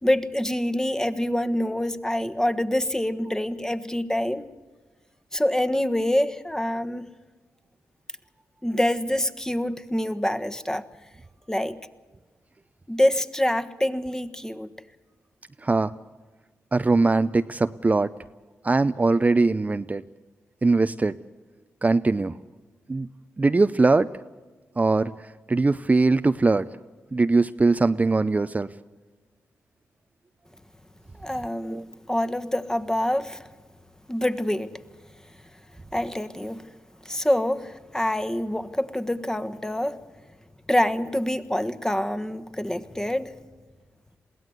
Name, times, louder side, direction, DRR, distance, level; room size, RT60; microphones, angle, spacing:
voice 1, 0.0-4.5 5.3-7.1 8.6-10.8 11.5-11.8 12.9-14.7 31.1-33.5 34.1-34.8 35.9-36.7 37.0-40.0 40.7-43.4, left 1 dB, 10° left, 1.4 m, -26 dB
voice 2, 15.6-15.9 16.7-18.1 18.6-20.0 20.6-21.1 21.8-22.4 22.9-23.1 23.4-24.1 24.8-26.6 27.1-28.7 31.7-31.8, right 3 dB, 25° right, 0.6 m, -21 dB
22.0 x 16.5 x 8.1 m
supercardioid pair, 50°, 5 cm